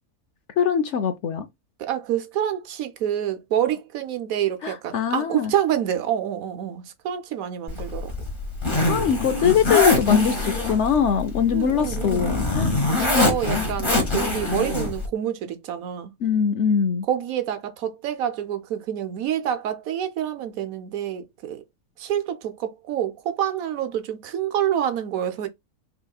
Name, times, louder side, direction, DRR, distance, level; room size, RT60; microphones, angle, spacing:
voice 1, 0.6-1.5 4.6-5.5 8.9-12.7 16.2-17.0, left 7 dB, 65° left, 0.7 m, -22 dB
voice 2, 1.8-8.1 11.5-12.4 12.9-16.1 17.1-21.6 22.0-25.5, right 10 dB, 75° right, 1.1 m, -27 dB
Zipper (clothing), 7.7-15.1, left 2 dB, 20° left, 1.3 m, -24 dB
5.7 x 3.0 x 2.3 m
omnidirectional pair, 1.5 m